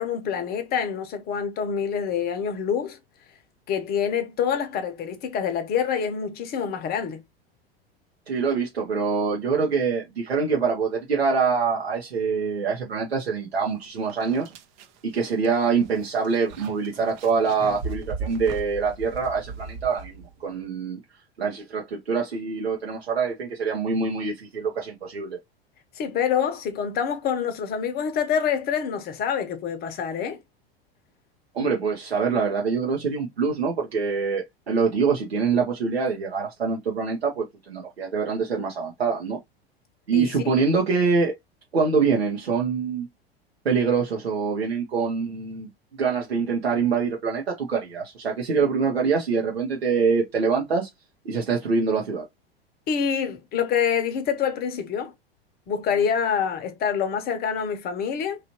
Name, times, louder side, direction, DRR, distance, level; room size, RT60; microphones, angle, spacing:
voice 1, 0.0-3.0 3.7-7.2 26.0-30.4 40.1-40.6 52.9-55.1 55.7-58.4, left 7 dB, 30° left, 0.7 m, -26 dB
voice 2, 8.3-14.5 15.0-21.0 21.4-25.4 31.5-39.4 40.1-41.3 41.7-43.1 43.6-45.7 46.0-50.9 51.2-52.2, right 5 dB, 85° right, 0.8 m, -25 dB
sound 1, 13.6-13.7 14.1-20.5, right 5 dB, 45° right, 0.7 m, -38 dB
3.0 x 2.4 x 2.8 m
figure-of-eight pair, 85°, 30 cm